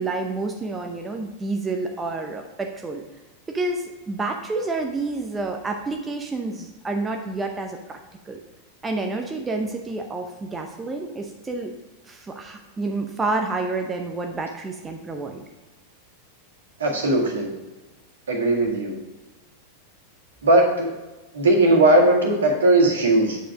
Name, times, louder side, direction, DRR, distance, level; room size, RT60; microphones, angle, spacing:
voice 1, 0.0-3.0 3.5-8.0 8.3-8.4 8.8-11.7 12.1-15.4, right 3 dB, 15° right, 3 dB, 0.7 m, -29 dB
voice 2, 16.8-17.5 18.3-18.9 20.4-20.9 21.3-23.4, right 2 dB, 65° right, 0 dB, 1.8 m, -18 dB
8.2 x 5.1 x 4.9 m, 1.1 s
figure-of-eight pair, 90°, 0 cm